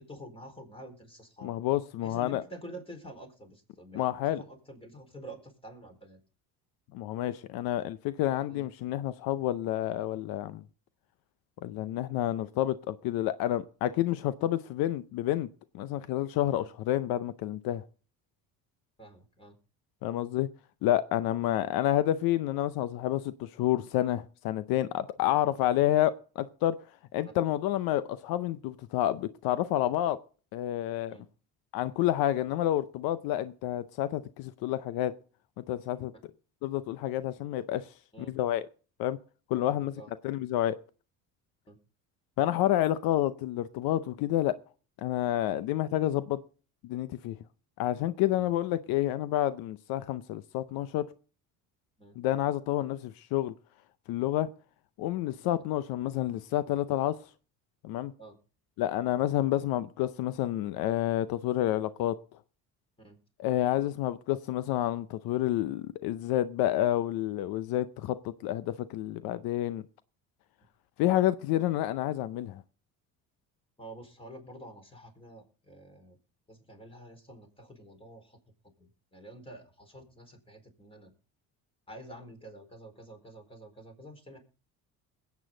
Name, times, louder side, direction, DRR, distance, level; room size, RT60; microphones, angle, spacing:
voice 1, 0.0-1.5 2.0-4.1 4.4-6.2 8.5-8.6 13.9-14.0 16.6-16.7 19.0-19.6 21.4-21.5 25.2-25.3 31.1-31.2 38.1-38.4 39.6-40.1 41.7-41.8 48.4-48.5 52.0-52.2 58.2-58.4 63.0-63.2 73.8-76.2 76.5-78.4 78.8-81.1 81.9-84.4, right 1 dB, 15° left, 4.3 m, -48 dB
voice 2, 1.4-2.4 3.9-4.4 6.9-10.6 11.6-15.5 15.7-17.8 20.0-20.5 20.8-26.8 27.1-30.2 30.5-31.2 31.7-35.1 35.6-36.1 36.6-38.7 39.0-39.2 39.5-39.9 40.2-40.8 42.4-44.6 45.0-46.4 46.8-47.4 47.8-51.1 52.2-53.5 54.1-54.5 55.0-57.2 57.8-58.1 58.8-62.2 63.4-69.8 71.0-72.6, left 13 dB, 80° left, 0.7 m, -29 dB
21.0 x 8.4 x 3.8 m
cardioid pair, 90°, 36 cm